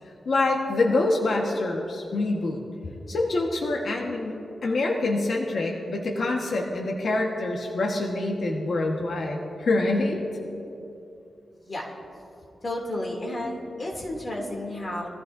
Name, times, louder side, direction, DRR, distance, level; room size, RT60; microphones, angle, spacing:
voice 1, 0.2-2.6 3.1-10.2, left 2 dB, 65° left, -1 dB, 1.4 m, -26 dB
voice 2, 11.6-11.9 12.6-15.1, left 1 dB, 35° left, -1 dB, 2.8 m, -32 dB
22.5 x 15.0 x 2.7 m, 2.8 s
wide cardioid pair, 95°, 0 cm